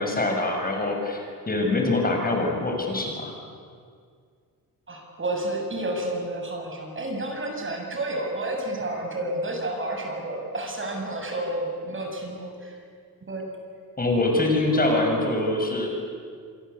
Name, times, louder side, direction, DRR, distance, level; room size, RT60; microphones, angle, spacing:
voice 1, 0.0-3.3 14.0-15.9, left 2 dB, 25° left, 2 dB, 6.9 m, -24 dB
voice 2, 4.9-12.8 13.3-13.5, right 1 dB, 35° right, 2 dB, 7.3 m, -30 dB
28.0 x 23.5 x 8.5 m, 2.1 s
cardioid pair, 105°, 37 cm